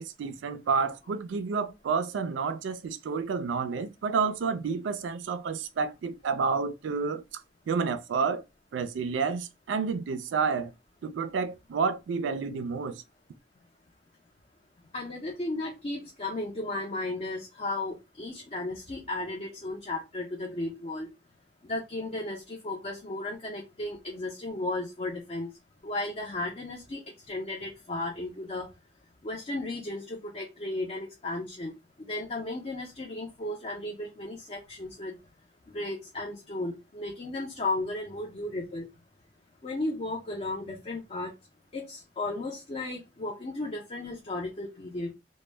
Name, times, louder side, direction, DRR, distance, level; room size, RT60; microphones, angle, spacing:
voice 1, 0.0-7.2 7.7-8.4 8.7-10.7 11.0-13.0, right 5 dB, 80° right, 0.3 m, -30 dB
voice 2, 14.8-21.1 21.6-25.5 25.8-28.7 29.2-35.1 35.7-38.9 39.6-41.3 41.7-45.1, left 2 dB, 35° left, 0.5 m, -35 dB
2.1 x 2.0 x 3.2 m
head